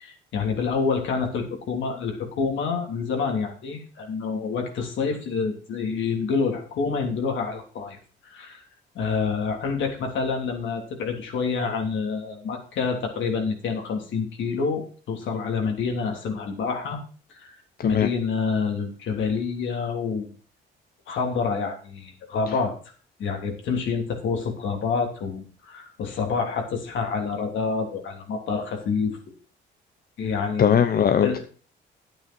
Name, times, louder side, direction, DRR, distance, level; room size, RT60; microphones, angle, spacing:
voice 1, 0.0-8.0 8.2-8.6 9.0-17.0 17.3-17.6 17.8-20.3 21.1-22.8 23.2-29.2 30.2-30.8 31.2-31.4, left 5 dB, 75° left, 2 dB, 3.3 m, -27 dB
voice 2, 30.6-31.4, left 8 dB, 50° left, 9 dB, 0.8 m, -20 dB
11.0 x 8.9 x 4.5 m, 0.39 s
cardioid pair, 90°, 20 cm